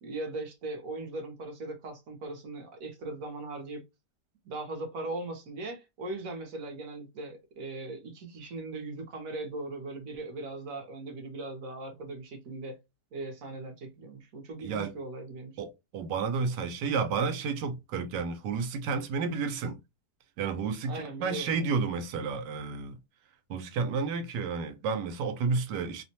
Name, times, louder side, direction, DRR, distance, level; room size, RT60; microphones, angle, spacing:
voice 1, 0.0-3.8 4.4-12.8 13.1-15.6 20.8-21.5, right 2 dB, 60° right, 1.1 m, -39 dB
voice 2, 14.6-14.9 15.6-15.7 15.9-19.8 20.4-23.0 23.5-26.0, right 5 dB, 80° right, 1.2 m, -31 dB
2.9 x 2.1 x 2.7 m
omnidirectional pair, 1.8 m